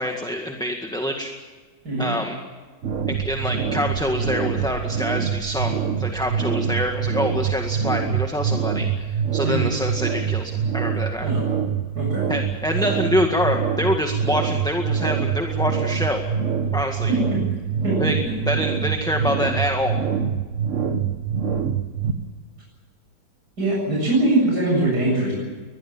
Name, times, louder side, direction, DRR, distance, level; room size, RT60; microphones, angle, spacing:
voice 1, 0.0-1.3 2.0-2.4 3.1-11.3 12.3-16.2 16.7-17.1 18.0-20.0, left 1 dB, ahead, 3 dB, 1.8 m, -26 dB
sound 1, 2.8-22.1, right 7 dB, 45° right, 1.7 m, -25 dB
voice 2, 17.8-18.1 23.6-25.3, right 2 dB, 70° right, -3 dB, 8.2 m, -22 dB
23.0 x 20.5 x 7.3 m, 1.4 s
omnidirectional pair, 1.8 m